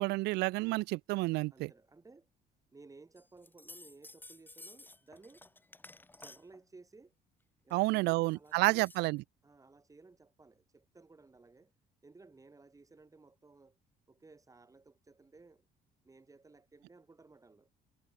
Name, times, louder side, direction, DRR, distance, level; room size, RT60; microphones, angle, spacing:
voice 1, 0.0-1.7 7.7-9.2, right 22 dB, 85° right, 0.4 m, -30 dB
voice 2, 1.5-2.3 2.7-5.5 6.1-7.1 7.6-8.9 9.4-11.7 12.0-13.8 14.1-15.7 16.0-17.7, right 3 dB, 20° right, 6.8 m, -58 dB
sound 1, 3.2-6.6 7.7-9.2, left 2 dB, 10° left, 3.1 m, -54 dB
cardioid pair, 110°, 17 cm